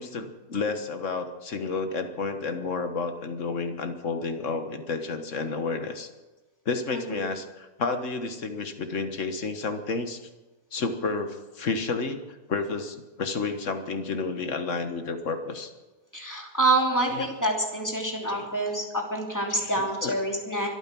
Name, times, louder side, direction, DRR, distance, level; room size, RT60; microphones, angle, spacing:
voice 1, 0.0-6.1 6.6-10.2 10.7-15.7 17.1-17.3 18.3-18.5 19.5-20.2, left 4 dB, 50° left, 7 dB, 1.7 m, -31 dB
voice 2, 16.1-20.7, right 2 dB, 10° left, 0 dB, 2.8 m, -27 dB
24.0 x 9.1 x 6.1 m, 1.2 s
omnidirectional pair, 1.7 m